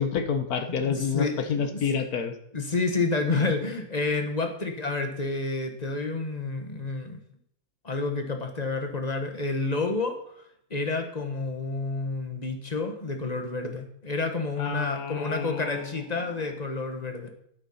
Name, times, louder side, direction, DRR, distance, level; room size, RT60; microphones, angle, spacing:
voice 1, 0.0-2.4 14.6-16.2, left 6 dB, 75° left, 8 dB, 1.6 m, -29 dB
voice 2, 0.7-1.8 2.5-7.2 7.8-17.3, left 3 dB, 30° left, 5 dB, 1.3 m, -30 dB
10.0 x 8.4 x 5.6 m, 0.72 s
omnidirectional pair, 1.6 m